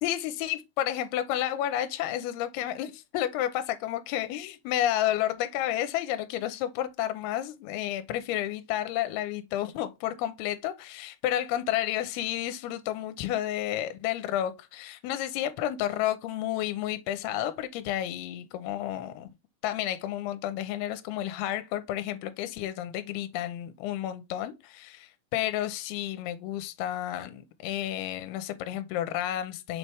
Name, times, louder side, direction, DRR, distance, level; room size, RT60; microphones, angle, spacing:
voice 1, 0.0-19.3 19.6-29.8, left 12 dB, 85° left, 2.6 m, -31 dB
6.6 x 4.3 x 3.4 m
omnidirectional pair, 4.6 m